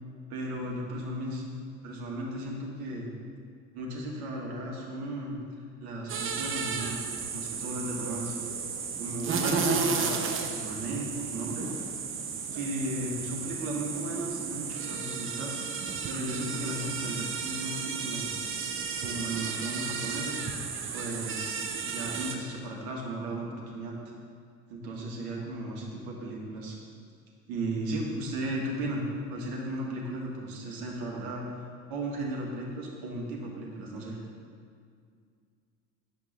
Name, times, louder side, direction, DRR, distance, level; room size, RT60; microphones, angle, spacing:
voice 1, 0.3-1.4 1.8-3.1 3.7-5.4 5.8-7.0 7.3-8.4 9.0-11.9 12.5-18.3 19.0-20.4 20.9-21.6 21.8-23.9 24.7-26.8 27.5-29.0 29.3-31.5 31.9-34.2, right 1 dB, 55° right, -2 dB, 1.8 m, -35 dB
sound 1, 6.1-22.3, right 5 dB, 30° right, 0.8 m, -33 dB
9.2 x 5.4 x 4.0 m, 2.2 s
figure-of-eight pair, 65°, 43 cm